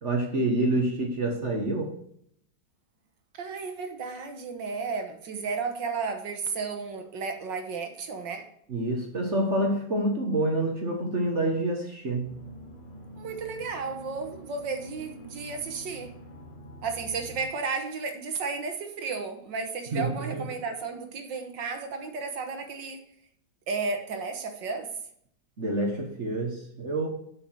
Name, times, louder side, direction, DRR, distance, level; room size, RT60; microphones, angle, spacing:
voice 1, 0.0-1.9 8.7-12.3 19.9-20.5 25.6-27.1, right 1 dB, 40° right, 2 dB, 1.5 m, -27 dB
voice 2, 3.3-8.5 13.2-16.1 16.8-23.0 23.7-24.9, right 4 dB, 70° right, 5 dB, 2.0 m, -33 dB
sound 1, 12.2-17.4, equal, 25° left, 2.0 m, -46 dB
7.5 x 6.3 x 6.4 m, 0.69 s
omnidirectional pair, 2.1 m